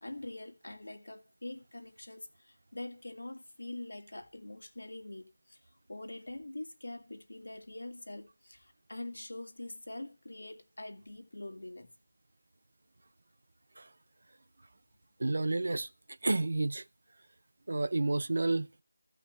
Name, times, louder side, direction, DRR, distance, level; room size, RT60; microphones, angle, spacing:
voice 1, 0.0-11.9, left 2 dB, 80° left, 2.1 m, -44 dB
voice 2, 15.2-15.9 16.2-16.8 17.7-18.8, right 2 dB, 60° right, 0.6 m, -30 dB
14.5 x 5.9 x 7.9 m
figure-of-eight pair, 170°, 0 cm